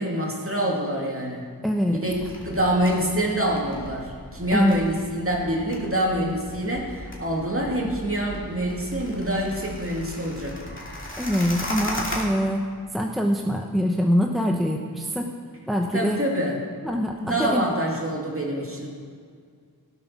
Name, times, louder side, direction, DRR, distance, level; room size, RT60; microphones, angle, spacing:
voice 1, 0.0-1.4 1.9-10.7 15.9-16.6 17.2-18.9, right 1 dB, 35° right, -2 dB, 2.6 m, -26 dB
voice 2, 1.6-2.0 4.5-4.8 11.2-12.6 12.9-15.3 15.7-16.2 16.8-17.7, equal, ahead, 2 dB, 0.8 m, -24 dB
sound 1, 2.1-12.2, equal, 30° left, 2.6 m, -37 dB
16.0 x 7.4 x 6.1 m, 2.1 s
wide cardioid pair, 60°, 37 cm